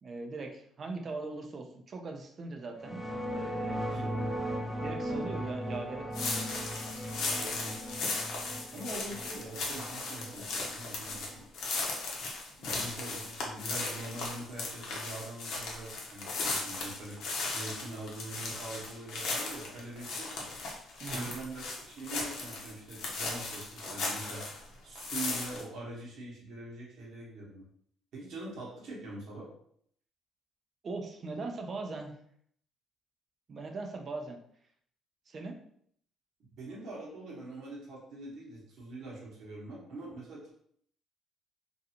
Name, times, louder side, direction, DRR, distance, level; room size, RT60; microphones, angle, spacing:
voice 1, 0.0-3.0 3.3-4.1 4.8-6.5 21.0-21.3 30.8-32.1 33.5-34.4 35.3-35.6, right 3 dB, 50° right, 3 dB, 0.5 m, -40 dB
sound 1, 2.8-11.4, equal, 5° right, 0.6 m, -38 dB
voice 2, 3.6-4.3 7.2-7.8 8.7-10.5 10.7-11.5 12.6-20.5 21.1-24.4 24.8-27.7 28.1-29.4 36.6-40.5, right 2 dB, 65° right, -5 dB, 1.1 m, -43 dB
sound 2, 6.1-24.6 25.0-25.6, left 3 dB, 70° left, 0.7 m, -37 dB
2.6 x 2.3 x 2.8 m, 0.66 s
supercardioid pair, 70°, 0 cm